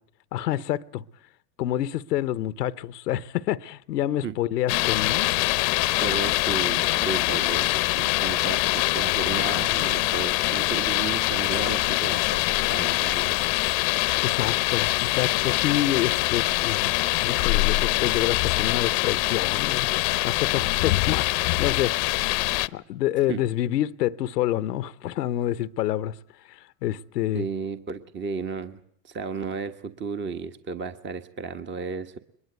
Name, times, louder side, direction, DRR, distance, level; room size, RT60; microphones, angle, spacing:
voice 1, 0.3-1.0 1.6-5.3 14.2-16.9 17.2-19.9 20.2-22.0 22.7-26.1 26.5-27.4, left 13 dB, 90° left, 0.9 m, -27 dB
sound 1, 4.7-22.7, left 23 dB, 60° left, 0.9 m, -24 dB
voice 2, 6.0-13.4 23.3-23.4 27.3-32.2, right 5 dB, 25° right, 1.3 m, -34 dB
23.0 x 21.0 x 8.0 m
hypercardioid pair, 110°, 47 cm